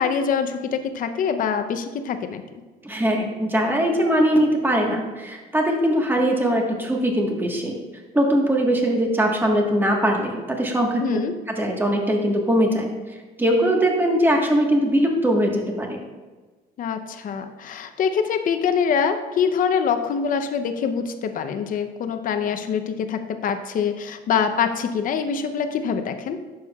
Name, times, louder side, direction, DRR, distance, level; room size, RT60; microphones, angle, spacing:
voice 1, 0.0-2.4 11.0-11.3 16.8-26.4, left 6 dB, 55° left, 8 dB, 0.7 m, -24 dB
voice 2, 2.8-7.8 8.1-11.2 11.5-12.9 13.4-16.0, equal, 10° right, 1 dB, 1.4 m, -21 dB
10.5 x 7.1 x 2.4 m, 1.3 s
cardioid pair, 110°, 17 cm